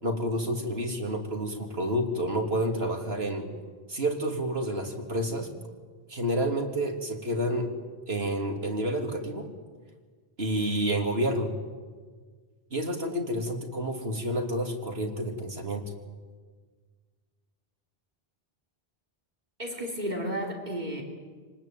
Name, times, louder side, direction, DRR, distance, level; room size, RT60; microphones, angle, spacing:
voice 1, 0.0-3.5 3.9-5.5 6.1-7.7 8.1-9.5 10.4-11.5 12.7-15.8, right 1 dB, 80° right, 3 dB, 3.4 m, -29 dB
voice 2, 19.6-21.0, equal, 45° right, 1 dB, 3.6 m, -32 dB
28.0 x 19.5 x 9.2 m, 1.5 s
omnidirectional pair, 1.0 m